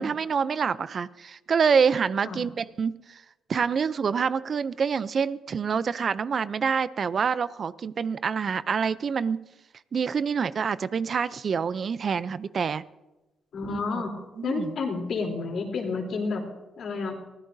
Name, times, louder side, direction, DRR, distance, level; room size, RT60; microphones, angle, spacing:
voice 1, 0.0-3.2 3.5-9.4 9.9-12.8 13.7-14.0 14.4-14.8, right 6 dB, 45° right, 16 dB, 0.5 m, -26 dB
voice 2, 13.5-14.1 14.4-16.5 16.8-17.2, left 4 dB, 65° left, 1 dB, 3.4 m, -30 dB
24.0 x 16.0 x 2.7 m, 1.0 s
cardioid pair, 90°, 0 cm